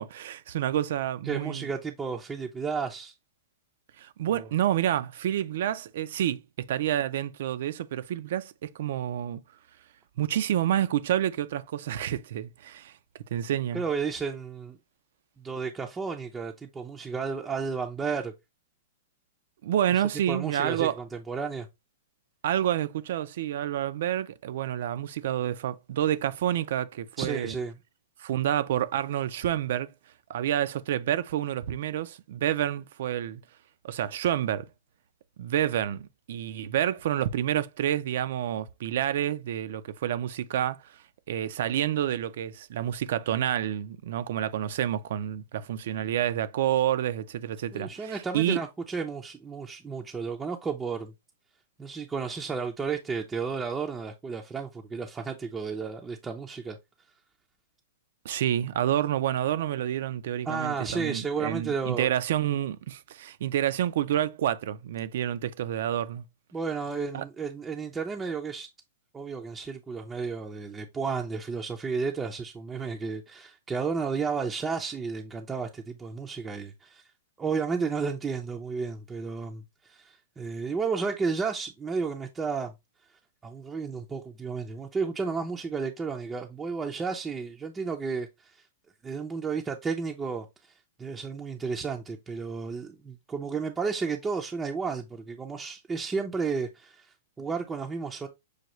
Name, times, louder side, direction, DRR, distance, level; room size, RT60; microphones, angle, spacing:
voice 1, 0.0-1.7 4.0-9.4 10.2-12.9 13.3-13.8 19.6-21.0 22.4-27.6 28.2-29.9 30.3-33.4 33.8-34.7 35.4-40.8 41.3-48.6 58.2-66.2 67.1-67.2, right 11 dB, 65° right, 0.4 m, -28 dB
voice 2, 1.2-3.1 4.3-4.5 13.7-14.8 15.4-18.3 19.9-21.7 27.2-27.8 47.7-51.1 51.8-56.8 60.5-62.1 66.5-68.7 69.1-77.0 77.4-82.7 83.4-88.6 89.0-90.7 91.0-98.3, right 5 dB, 15° right, 0.5 m, -32 dB
6.3 x 2.3 x 3.0 m
hypercardioid pair, 135°, 0 cm